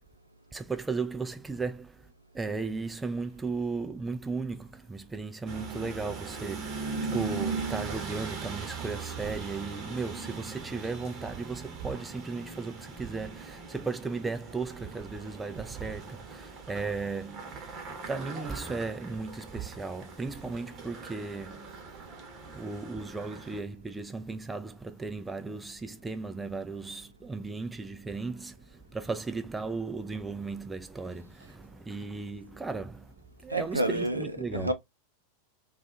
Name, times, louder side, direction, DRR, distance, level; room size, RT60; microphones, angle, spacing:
voice 1, 0.5-21.8 22.5-33.1 33.4-34.7, right 4 dB, 10° right, 0.3 m, -36 dB
sound 1, 5.5-23.6, right 5 dB, 30° right, 0.9 m, -40 dB
voice 2, 33.5-34.7, right 1 dB, 85° right, 0.4 m, -29 dB
2.4 x 2.4 x 2.4 m
figure-of-eight pair, 90°, 0 cm